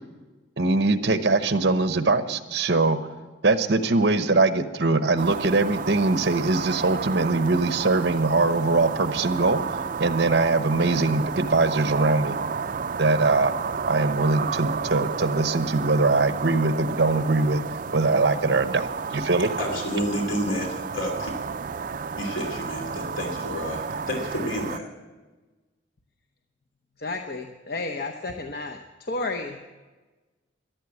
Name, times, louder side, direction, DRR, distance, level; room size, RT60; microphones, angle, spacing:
voice 1, 0.6-3.0 3.4-9.6 10.0-12.3 13.0-13.5 13.9-17.6 17.9-19.5, right 3 dB, 60° right, 10 dB, 0.9 m, -22 dB
sound 1, 5.2-24.8, right 5 dB, 45° right, 0.4 m, -31 dB
voice 2, 19.6-21.3 22.2-24.9, equal, 80° left, 2 dB, 2.8 m, -30 dB
voice 3, 27.0-29.8, left 3 dB, 50° left, 4 dB, 0.8 m, -32 dB
14.0 x 11.5 x 8.2 m, 1.3 s
head